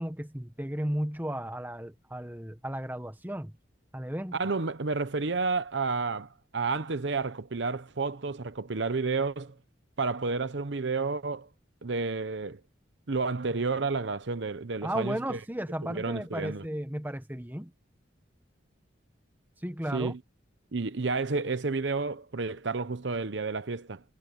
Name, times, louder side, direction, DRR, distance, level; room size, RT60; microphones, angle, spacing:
voice 1, 0.0-3.5 3.9-4.4 14.8-17.7 19.6-20.1, right 1 dB, 10° right, 1.5 m, -34 dB
voice 2, 4.3-9.5 10.0-11.5 11.8-12.6 13.1-15.4 15.8-16.6 19.9-20.2 20.7-24.0, right 4 dB, 65° right, 0.9 m, -31 dB
head